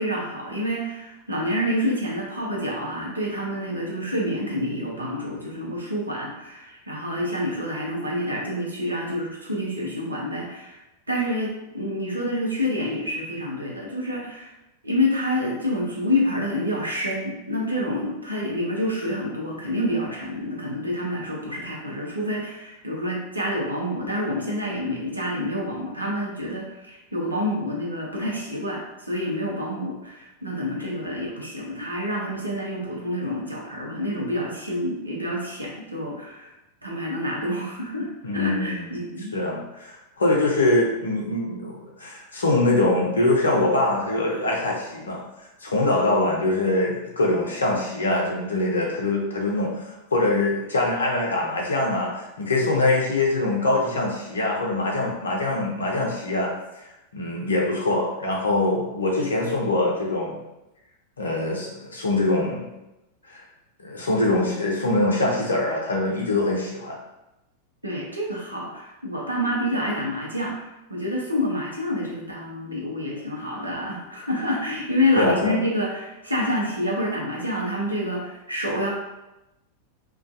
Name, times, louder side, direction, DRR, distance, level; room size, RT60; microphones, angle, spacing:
voice 1, 0.0-10.8 11.1-14.5 14.8-36.5 36.8-38.1 38.3-39.3 67.8-78.9, left 1 dB, 80° right, -3 dB, 0.6 m, -28 dB
voice 2, 38.2-38.8 39.3-45.2 45.6-56.5 57.1-60.4 61.2-62.7 63.3-63.4 63.8-67.0 75.2-75.6, left 2 dB, 70° left, -2 dB, 0.6 m, -23 dB
2.3 x 2.3 x 2.6 m, 0.95 s
figure-of-eight pair, 90°, 0 cm